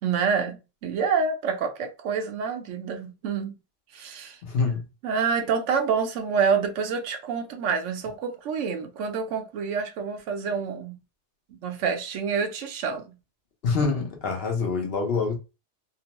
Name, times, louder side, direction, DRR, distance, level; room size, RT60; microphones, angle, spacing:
voice 1, 0.0-3.6 3.9-4.4 5.0-11.0 11.5-13.1, right 6 dB, 80° right, 0.9 m, -27 dB
voice 2, 4.4-4.9 13.6-15.4, left 4 dB, 60° left, 0.9 m, -26 dB
2.9 x 2.0 x 2.9 m
omnidirectional pair, 1.2 m